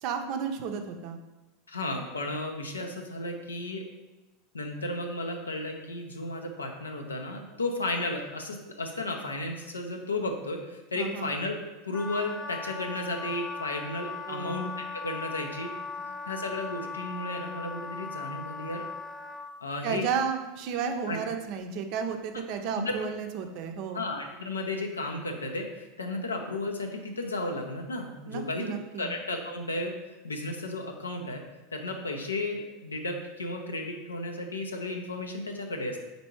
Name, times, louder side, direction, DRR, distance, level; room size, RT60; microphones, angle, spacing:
voice 1, 0.0-1.2 10.9-11.4 14.3-14.8 19.8-24.1 28.3-29.1, right 6 dB, 55° right, 5 dB, 0.5 m, -33 dB
voice 2, 1.7-3.8 4.5-11.6 11.8-15.7 16.3-18.9 19.6-20.0 21.1-21.2 22.8-23.0 23.9-29.9 30.2-31.4 31.7-36.0, left 2 dB, 90° left, 3 dB, 0.5 m, -34 dB
Wind instrument woodwind instrument, 11.9-19.5, left 4 dB, 15° left, 0.5 m, -38 dB
4.3 x 2.6 x 4.5 m, 1.1 s
hypercardioid pair, 85°, 0 cm